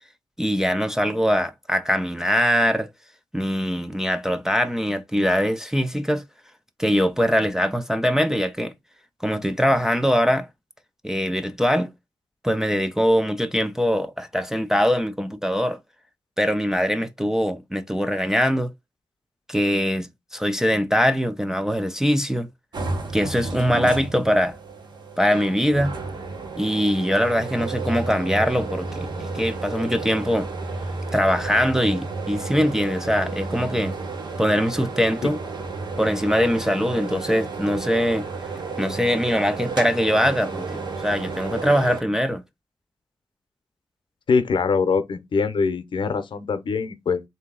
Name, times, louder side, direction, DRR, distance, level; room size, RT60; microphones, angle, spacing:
voice 1, 0.4-2.9 3.3-6.2 6.8-8.7 9.2-10.5 11.0-11.9 12.4-15.8 16.4-18.7 19.5-22.5 23.1-24.6 25.2-25.9 26.6-30.5 31.1-33.9 34.4-35.4 36.0-38.3 38.8-42.4, equal, 5° right, 0.3 m, -22 dB
sound 1, 22.7-42.0, right 3 dB, 60° right, 0.9 m, -32 dB
voice 2, 44.3-47.2, left 5 dB, 70° left, 0.7 m, -23 dB
3.7 x 2.7 x 3.7 m
wide cardioid pair, 175°, 9 cm